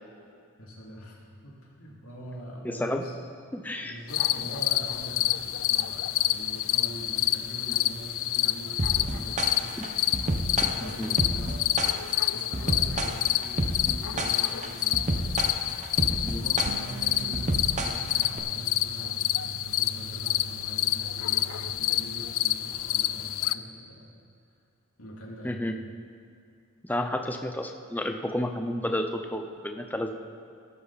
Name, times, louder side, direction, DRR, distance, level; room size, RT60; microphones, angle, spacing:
voice 1, 0.6-3.3 3.8-9.8 10.5-11.6 12.3-15.0 15.2-15.5 16.3-24.1 25.0-25.6 26.9-27.2, right 1 dB, 90° left, -3 dB, 2.6 m, -43 dB
voice 2, 2.6-3.0 3.5-4.0 9.8-9.9 10.6-11.1 16.2-16.4 25.4-25.7 26.8-30.1, left 1 dB, 10° left, 5 dB, 0.6 m, -31 dB
sound 1, 4.1-23.5, left 14 dB, 65° left, 0.4 m, -28 dB
sound 2, 8.8-18.4, right 1 dB, 35° right, 0.8 m, -30 dB
sound 3, 16.6-21.8, right 6 dB, 50° right, 0.4 m, -42 dB
18.5 x 8.2 x 4.1 m, 2.4 s
head